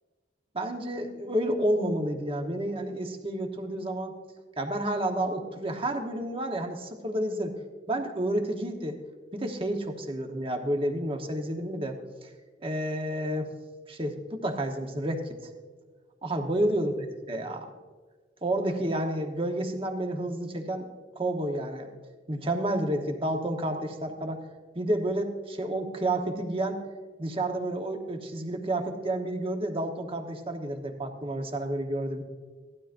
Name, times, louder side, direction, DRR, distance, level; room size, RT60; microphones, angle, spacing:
voice 1, 0.5-4.1 4.6-7.6 7.9-9.0 9.3-12.0 12.6-13.5 13.9-15.4 16.2-17.7 18.4-20.9 21.2-21.9 22.3-24.4 24.7-26.8 27.2-32.2, right 1 dB, 30° right, 4 dB, 1.0 m, -30 dB
17.0 x 12.0 x 2.6 m, 1.4 s
head